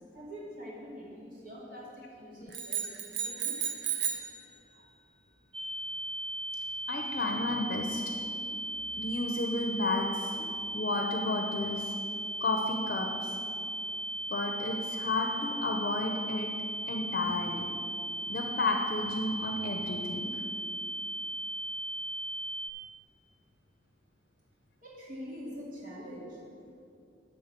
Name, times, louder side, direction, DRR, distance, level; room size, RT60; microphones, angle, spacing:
voice 1, 0.1-3.5 24.8-26.4, equal, 50° right, -5 dB, 2.6 m, -44 dB
sound 1, 2.5-4.4, right 8 dB, 90° right, 1.0 m, -33 dB
sound 2, 5.5-22.7, right 1 dB, 30° right, 0.6 m, -37 dB
voice 2, 6.9-8.0 9.0-11.9 12.4-13.4 14.3-16.5 16.9-17.7 18.3-20.4, left 2 dB, 55° left, 2 dB, 0.7 m, -32 dB
11.5 x 3.9 x 7.3 m, 2.5 s
head